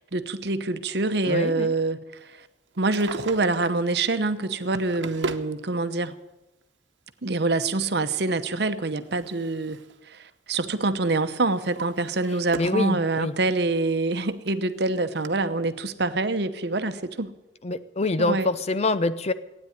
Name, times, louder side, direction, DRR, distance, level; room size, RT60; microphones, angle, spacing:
voice 1, 0.0-2.5 2.8-6.2 7.2-9.8 10.1-17.3 18.2-18.5, right 3 dB, 60° right, 10 dB, 0.9 m, -26 dB
voice 2, 1.2-1.7 12.6-13.4 17.6-19.3, left 2 dB, 35° left, 13 dB, 0.6 m, -25 dB
Drawer open or close, 2.7-3.8 4.6-5.5 6.6-6.7 8.5-10.0 10.3-10.7 11.2-12.9 13.3-13.4 14.1-14.2 14.5-14.6 15.2-15.3, right 3 dB, 90° right, 1.0 m, -37 dB
16.0 x 9.6 x 9.5 m, 1.0 s
head